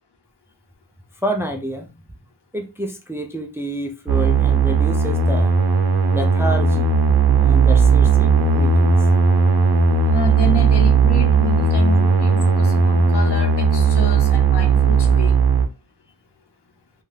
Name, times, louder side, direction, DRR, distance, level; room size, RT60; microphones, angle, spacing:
voice 1, 1.2-1.9 2.5-5.5 6.1-6.9 7.4-8.9, right 1 dB, 5° right, 0.4 m, -28 dB
sound 1, 4.1-15.7, right 5 dB, 65° right, 0.6 m, -16 dB
voice 2, 10.1-15.4, left 5 dB, 75° left, 0.8 m, -29 dB
2.6 x 2.3 x 3.2 m
wide cardioid pair, 80°, 41 cm